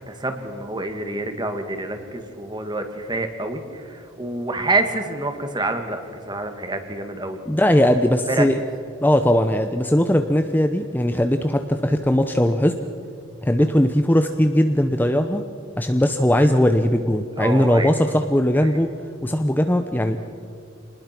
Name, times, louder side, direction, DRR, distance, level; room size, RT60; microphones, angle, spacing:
voice 1, 0.0-7.4 7.7-7.9 8.3-8.5 13.6-13.7 17.4-18.1, right 2 dB, 20° right, 6 dB, 2.1 m, -27 dB
voice 2, 7.5-8.6 9.0-12.8 13.4-15.4 15.8-18.9 19.2-20.2, left 1 dB, 10° left, 7 dB, 0.8 m, -19 dB
26.5 x 20.0 x 6.0 m, 2.5 s
head